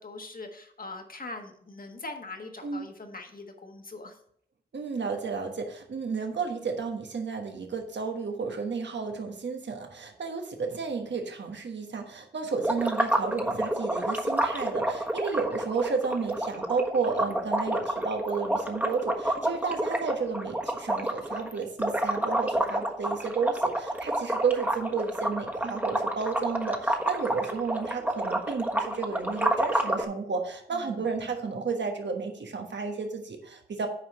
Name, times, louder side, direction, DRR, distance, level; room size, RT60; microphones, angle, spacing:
voice 1, 0.0-4.2 30.7-31.3, left 2 dB, 50° left, 4 dB, 1.5 m, -42 dB
voice 2, 4.7-33.9, right 5 dB, 80° right, 4 dB, 1.3 m, -32 dB
sound 1, 12.6-30.0, right 1 dB, 10° right, 1.3 m, -29 dB
9.0 x 4.8 x 5.4 m, 0.65 s
cardioid pair, 50°, 18 cm